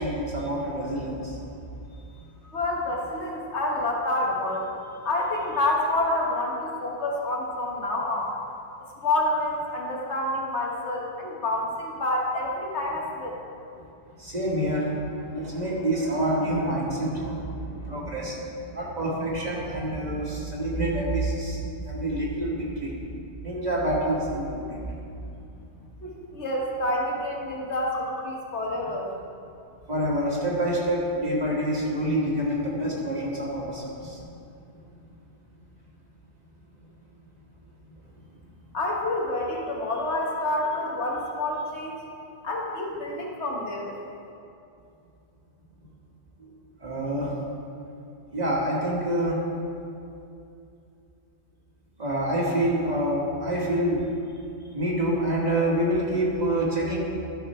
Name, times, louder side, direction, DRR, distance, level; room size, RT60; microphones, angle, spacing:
voice 1, 0.0-1.4 14.2-18.4 18.7-22.9 23.4-24.8 29.9-34.2 46.8-47.3 48.3-49.4 52.0-54.0 54.7-57.0, right 1 dB, 40° right, -4 dB, 1.6 m, -27 dB
voice 2, 2.4-4.7 5.0-8.3 9.0-13.4 26.0-29.1 38.7-42.0 42.4-43.9, left 1 dB, 85° left, -1 dB, 1.6 m, -28 dB
11.5 x 6.1 x 4.3 m, 2.6 s
omnidirectional pair, 1.1 m